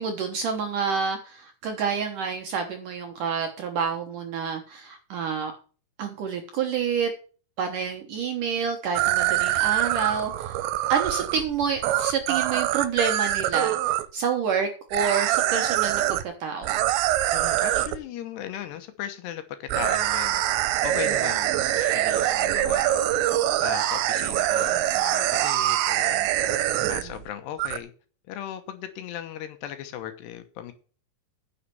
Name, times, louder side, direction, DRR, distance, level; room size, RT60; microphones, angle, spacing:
voice 1, 0.0-5.5 6.0-7.1 7.6-10.6 10.9-16.8 21.1-21.2 26.8-27.1, right 6 dB, 70° right, 4 dB, 2.1 m, -28 dB
sound 1, 9.0-14.1 14.9-16.2 16.6-18.0 19.7-27.3 27.6-27.8, right 14 dB, 90° right, 3.0 m, -24 dB
voice 2, 17.3-20.4 20.6-23.0 23.6-26.3 26.9-27.9 28.3-30.7, left 10 dB, 75° left, 9 dB, 3.0 m, -37 dB
10.0 x 6.6 x 6.9 m, 0.39 s
omnidirectional pair, 5.1 m